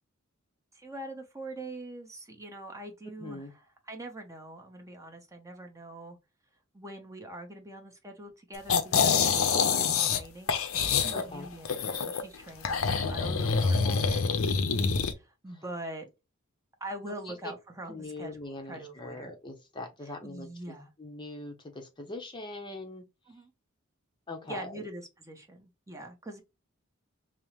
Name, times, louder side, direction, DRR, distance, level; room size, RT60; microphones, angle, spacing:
voice 1, 0.7-3.4 3.9-6.2 6.7-10.5 10.9-14.8 15.1-16.1 16.8-19.3 20.2-20.9 23.3-23.5 24.5-26.4, right 1 dB, 15° right, 0.8 m, -43 dB
voice 2, 3.2-3.5 9.3-10.0 11.1-11.5 13.2-14.2 17.1-17.5 17.9-23.0 24.3-24.9, left 2 dB, 20° left, 0.7 m, -42 dB
sound 1, 8.7-10.2 10.5-12.2 12.6-15.1, left 5 dB, 75° left, 0.6 m, -26 dB
5.3 x 2.0 x 3.0 m
head